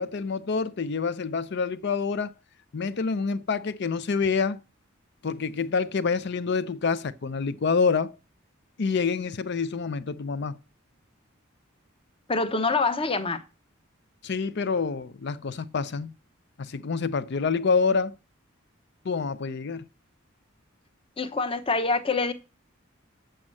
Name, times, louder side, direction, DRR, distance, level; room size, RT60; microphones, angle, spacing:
voice 1, 0.0-2.3 2.7-4.6 5.2-8.2 8.8-10.6 14.2-16.1 16.6-18.1 19.0-19.9, left 5 dB, 55° left, 0.5 m, -27 dB
voice 2, 12.3-13.4 21.2-22.3, left 3 dB, 25° left, 0.8 m, -25 dB
7.7 x 5.3 x 7.5 m
head